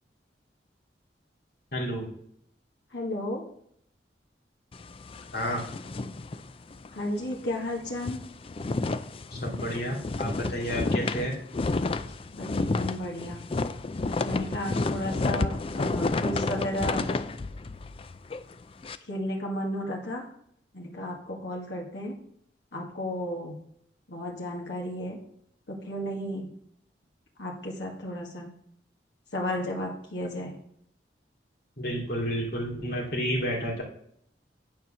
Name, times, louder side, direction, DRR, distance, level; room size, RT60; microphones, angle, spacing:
voice 1, 1.7-2.1 5.3-5.6 9.3-11.4 31.8-33.8, equal, 60° left, -3 dB, 2.6 m, -31 dB
voice 2, 2.9-3.4 6.9-8.2 12.3-13.4 14.2-17.1 19.1-20.3 20.7-22.2 22.7-23.5 24.1-25.2 25.7-26.5 27.4-28.5 29.3-30.6, left 1 dB, 85° left, -1 dB, 1.8 m, -33 dB
sound 1, 4.7-7.0 7.3-7.5 7.8-19.0, left 3 dB, 30° left, 0.4 m, -31 dB
9.4 x 4.6 x 6.2 m, 0.69 s
head